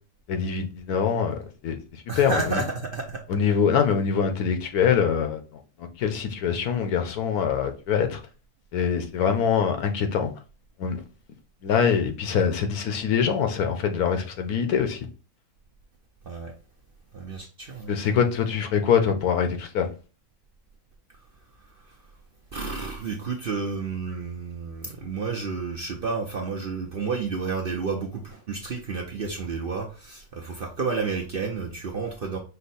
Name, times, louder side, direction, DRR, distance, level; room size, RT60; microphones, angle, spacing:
voice 1, 0.3-2.6 3.3-5.4 5.8-8.2 8.7-10.3 10.8-11.0 11.6-15.0 17.9-19.9, left 7 dB, 80° left, 1.2 m, -24 dB
voice 2, 2.1-3.2 16.2-16.5 17.1-18.2 21.6-22.0 22.5-32.4, right 4 dB, 55° right, 0.6 m, -31 dB
5.4 x 2.1 x 4.1 m
omnidirectional pair, 1.6 m